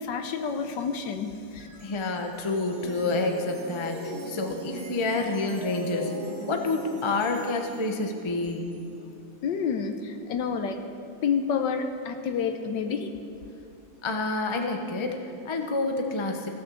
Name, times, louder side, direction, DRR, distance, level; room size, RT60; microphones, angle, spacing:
voice 1, 0.0-1.7 9.4-10.8 11.2-13.1, left 6 dB, 70° left, 7 dB, 1.3 m, -29 dB
sound 1, 1.3-10.6, equal, 55° right, 2.0 m, -40 dB
voice 2, 1.8-6.1 6.4-8.8 14.0-16.5, left 3 dB, 40° left, 4 dB, 0.4 m, -28 dB
16.0 x 6.5 x 7.0 m, 2.5 s
omnidirectional pair, 2.1 m